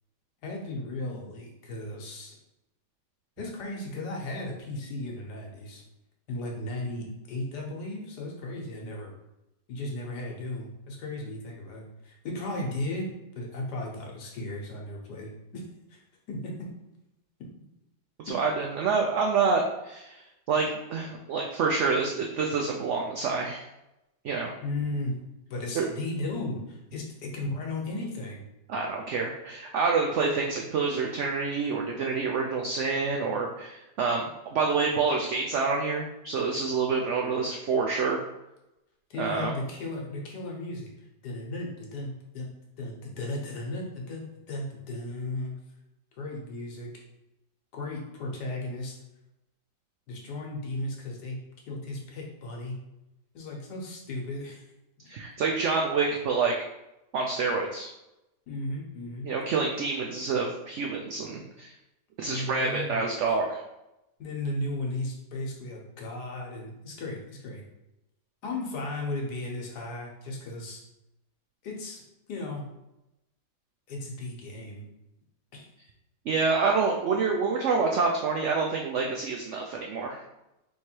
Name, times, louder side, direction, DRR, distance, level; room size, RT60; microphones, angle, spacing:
voice 1, 0.4-2.4 3.4-5.8 6.3-9.1 9.7-15.6 15.9-16.0 16.3-16.6 18.3-18.4 24.6-25.2 25.5-28.4 39.1-40.9 41.2-42.5 42.8-45.5 46.2-47.0 47.7-49.0 50.1-51.4 51.7-52.7 53.3-54.6 58.5-59.3 62.3-63.0 64.2-67.6 68.4-70.8 71.6-72.0 72.3-72.7 73.9-74.9 75.5-75.7, left 2 dB, 75° left, -1 dB, 1.5 m, -35 dB
voice 2, 18.2-20.2 20.5-23.6 24.2-24.5 25.7-25.8 28.7-38.2 39.2-39.5 55.1-56.5 57.1-57.9 59.2-61.7 62.2-63.6 76.3-80.2, right 4 dB, 90° right, 0 dB, 0.6 m, -27 dB
3.4 x 3.2 x 4.4 m, 0.94 s
omnidirectional pair, 1.8 m